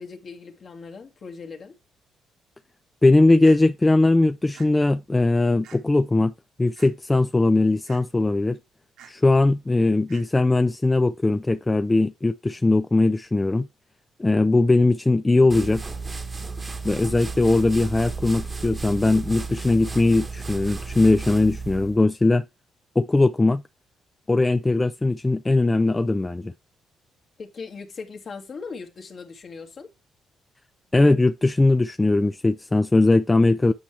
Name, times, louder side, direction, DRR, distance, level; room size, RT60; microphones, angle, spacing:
voice 1, 0.0-1.8 27.4-29.9, left 4 dB, 50° left, 2.0 m, -39 dB
voice 2, 3.0-6.3 6.6-8.6 9.1-13.7 14.2-15.8 16.8-22.4 23.0-23.6 24.3-26.5 30.9-33.7, left 2 dB, 15° left, 0.5 m, -20 dB
sound 1, 3.4-3.6 4.5-4.7 5.6-5.8 6.8-6.9 7.9-8.0 9.0-9.1 10.1-10.2, right 8 dB, 85° right, 1.8 m, -47 dB
sound 2, 15.5-22.0, right 4 dB, 25° right, 1.2 m, -33 dB
8.6 x 5.8 x 3.3 m
cardioid pair, 90°, 0 cm